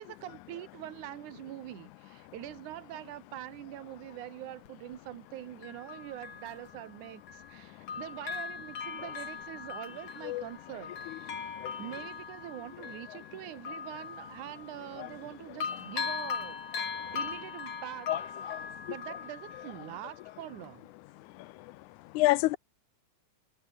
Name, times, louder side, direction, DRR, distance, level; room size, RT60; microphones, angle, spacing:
voice 1, 0.0-11.4 11.8-16.6 17.1-18.1 18.9-20.9, right 14 dB, 90° right, 2.5 m, -44 dB
Bell, 4.7-4.8 5.6-7.6 7.9-15.3 15.6-20.2 20.6-20.7, left 6 dB, 55° left, 4.1 m, -40 dB
voice 2, 22.2-22.6, left 18 dB, 90° left, 2.1 m, -27 dB
omnidirectional pair, 3.4 m